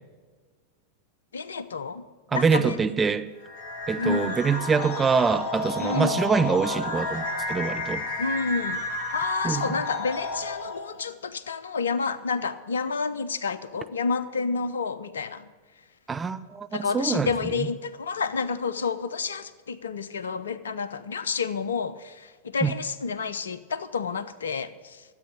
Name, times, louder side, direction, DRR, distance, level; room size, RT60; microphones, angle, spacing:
voice 1, 1.3-2.0 2.3-2.8 4.0-4.4 5.8-6.2 8.2-8.8 9.1-15.5 16.7-25.0, left 5 dB, 70° left, 15 dB, 0.7 m, -29 dB
voice 2, 2.3-3.3 3.9-8.0 9.4-9.8 16.1-17.3 22.6-22.7, right 5 dB, 15° right, 11 dB, 0.5 m, -25 dB
sound 1, 3.4-11.0, left 2 dB, 50° left, 1.4 m, -32 dB
13.0 x 8.4 x 8.4 m, 1.4 s
figure-of-eight pair, 90°, 0 cm